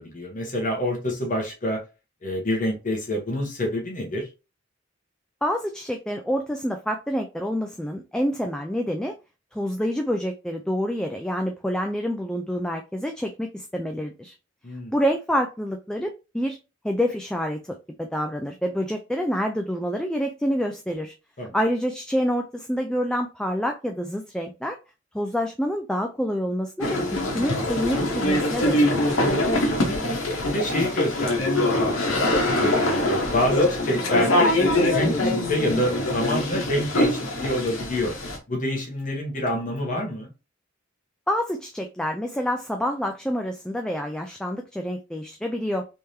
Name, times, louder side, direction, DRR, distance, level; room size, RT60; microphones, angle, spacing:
voice 1, 0.0-1.8 2.2-4.3 14.6-14.9 21.4-21.6 29.7-30.1 30.4-34.5 34.9-38.1 38.5-40.3, left 1 dB, 40° left, 1.1 m, -27 dB
voice 2, 5.4-9.1 9.5-14.3 14.9-16.6 16.8-21.1 21.5-24.8 25.1-27.0 27.3-29.3 41.3-45.9, equal, 5° left, 0.3 m, -27 dB
sound 1, 26.8-38.4, left 1 dB, 85° left, 1.1 m, -23 dB
3.5 x 3.2 x 2.7 m
head